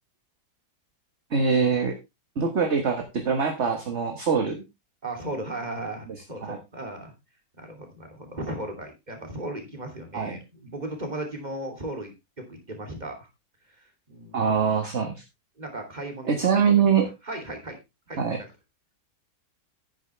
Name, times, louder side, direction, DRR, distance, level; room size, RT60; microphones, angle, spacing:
voice 1, 1.3-1.9 2.4-4.6 6.4-6.6 10.1-10.4 14.3-15.2 16.3-17.1 18.2-18.4, right 6 dB, 45° right, 4 dB, 1.7 m, -23 dB
voice 2, 5.0-7.1 7.6-12.1 12.4-13.1 14.1-14.4 15.6-16.6 17.3-17.8 18.1-18.5, right 1 dB, 25° right, 4 dB, 3.1 m, -36 dB
11.0 x 9.7 x 3.3 m, 0.23 s
omnidirectional pair, 1.7 m